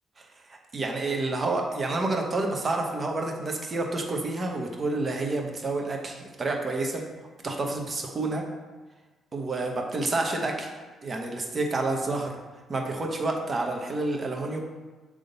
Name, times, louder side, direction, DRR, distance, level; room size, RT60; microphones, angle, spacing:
voice 1, 0.7-7.0 7.4-8.4 9.3-10.7 11.0-12.3 12.7-14.6, right 2 dB, 35° right, 2 dB, 1.0 m, -29 dB
6.7 x 3.6 x 3.9 m, 1.3 s
cardioid pair, 90°, 0 cm